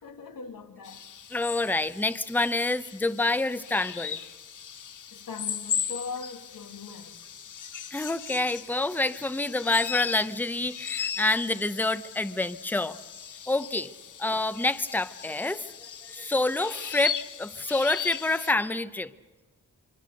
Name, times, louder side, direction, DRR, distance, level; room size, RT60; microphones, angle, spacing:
voice 1, 0.0-1.1 5.1-7.2, left 4 dB, 90° left, 2.1 m, -40 dB
sound 1, 0.8-18.5, left 8 dB, 65° left, 0.8 m, -38 dB
voice 2, 1.3-4.2 7.9-13.0 13.5-13.9 14.2-15.6 16.1-19.1, left 2 dB, 5° left, 0.8 m, -27 dB
24.5 x 24.5 x 6.6 m
wide cardioid pair, 95°, 33 cm